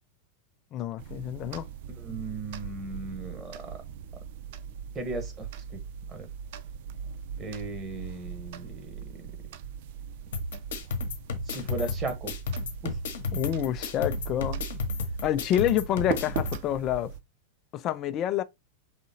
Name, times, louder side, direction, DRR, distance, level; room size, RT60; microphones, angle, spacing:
voice 1, 0.7-1.7 13.3-14.6 15.2-17.1 17.7-18.4, left 12 dB, 35° left, 0.4 m, -28 dB
sound 1, 1.0-17.2, right 8 dB, 50° right, 0.4 m, -40 dB
voice 2, 2.0-3.8 4.9-5.5 5.7-5.8 6.1-6.3 7.4-9.2 11.5-12.3 12.8-13.0, right 2 dB, 25° right, 1.3 m, -36 dB
sound 2, 10.3-16.5, left 3 dB, 60° left, 1.0 m, -33 dB
5.1 x 3.6 x 2.7 m
figure-of-eight pair, 90°, 0 cm